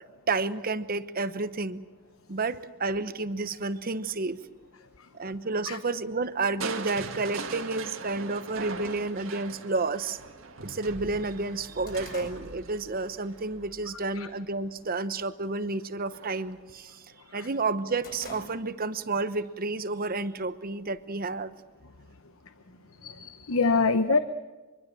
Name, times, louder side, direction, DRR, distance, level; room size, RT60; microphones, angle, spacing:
voice 1, 0.0-1.8 2.3-4.4 5.1-10.2 10.6-17.0 17.3-21.5 23.2-23.3, right 3 dB, 45° right, 13 dB, 1.0 m, -31 dB
Crushing, 6.6-14.5 16.1-16.6 17.1-17.2, right 4 dB, 70° right, 2.0 m, -40 dB
sound 1, 10.5-10.6 11.0-13.4 13.8-14.1 14.5-15.0 15.3-15.6 15.9-17.2 17.5-19.0 19.4-19.5 20.4-21.3, left 2 dB, 45° left, 7.1 m, -48 dB
voice 2, 23.0-24.2, left 4 dB, 80° left, 10 dB, 1.0 m, -24 dB
24.5 x 23.5 x 7.7 m, 1.2 s
head